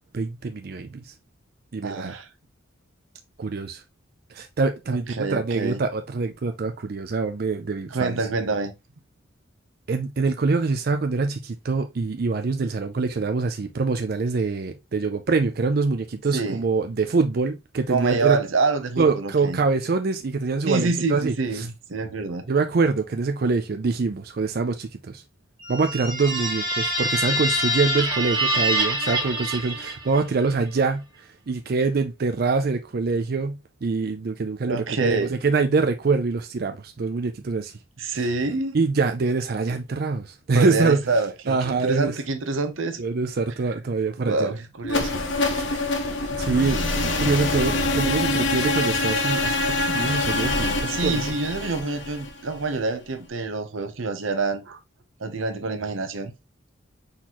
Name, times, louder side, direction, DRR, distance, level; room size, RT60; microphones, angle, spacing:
voice 1, 0.1-1.1 1.7-2.2 3.4-3.8 4.3-8.2 9.9-18.4 19.0-21.7 22.5-25.2 25.7-37.7 38.1-38.3 38.7-41.0 41.5-42.2 43.0-44.5 45.5-45.6 46.3-51.3, right 4 dB, 50° right, 0.4 m, -25 dB
voice 2, 1.8-2.3 4.9-5.8 7.9-8.7 16.3-16.6 17.9-19.6 20.7-22.4 34.7-35.3 38.0-38.8 40.5-43.0 44.2-45.2 50.9-54.8 55.2-56.3, right 3 dB, 85° right, 0.8 m, -26 dB
sound 1, 25.6-30.3, equal, 25° right, 2.2 m, -25 dB
sound 2, 44.8-52.8, left 2 dB, 65° left, 0.9 m, -25 dB
4.2 x 4.0 x 2.9 m
head